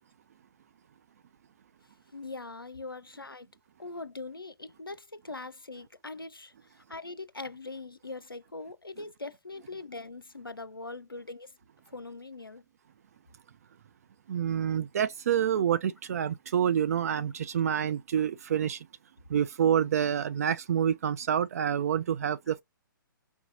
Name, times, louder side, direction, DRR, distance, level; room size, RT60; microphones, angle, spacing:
voice 1, 2.1-3.5 3.8-11.5 11.9-12.6, left 3 dB, 90° left, 0.5 m, -42 dB
voice 2, 14.3-18.8 19.3-22.6, right 9 dB, 45° right, 0.4 m, -27 dB
5.3 x 2.3 x 2.7 m
figure-of-eight pair, 125°, 12 cm